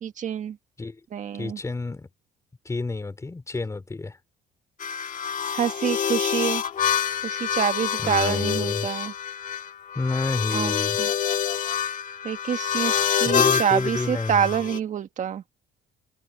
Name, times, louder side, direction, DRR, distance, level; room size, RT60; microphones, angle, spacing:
voice 1, 0.0-0.6 1.1-1.6 5.5-6.6 7.2-9.1 10.5-10.7 11.0-11.1 12.2-15.4, right 8 dB, 50° right, 1.6 m, -26 dB
voice 2, 1.4-2.1 2.7-4.2 8.0-8.9 10.0-11.0 13.3-14.6, left 3 dB, 20° left, 3.5 m, -29 dB
sound 1, 4.8-14.8, left 8 dB, 50° left, 1.8 m, -26 dB
cardioid pair, 110°, 17 cm